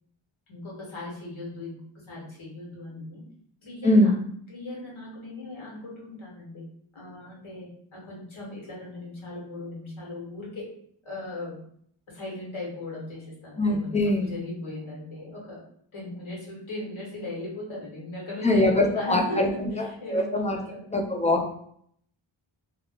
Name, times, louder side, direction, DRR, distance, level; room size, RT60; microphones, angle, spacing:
voice 1, 0.5-3.2 3.6-4.1 4.5-6.6 6.9-10.7 11.0-11.7 12.1-15.6 15.9-20.8 21.2-21.3, left 2 dB, 70° left, -4 dB, 1.2 m, -38 dB
voice 2, 13.6-14.3 18.4-20.6 20.9-21.5, left 1 dB, 15° left, 2 dB, 0.4 m, -23 dB
2.3 x 2.1 x 3.6 m, 0.66 s
wide cardioid pair, 50°, 49 cm